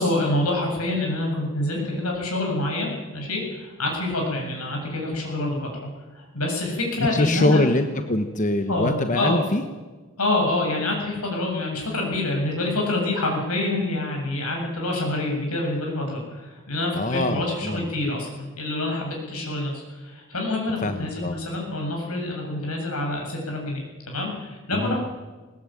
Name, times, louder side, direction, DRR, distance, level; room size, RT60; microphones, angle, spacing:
voice 1, 0.0-5.9 6.1-7.6 8.7-9.4 10.2-25.0, left 2 dB, 85° left, 1 dB, 7.9 m, -27 dB
voice 2, 7.0-9.6 16.9-17.9 20.8-21.3 24.7-25.0, left 1 dB, 35° left, 7 dB, 1.2 m, -23 dB
20.5 x 20.0 x 9.2 m, 1.3 s
head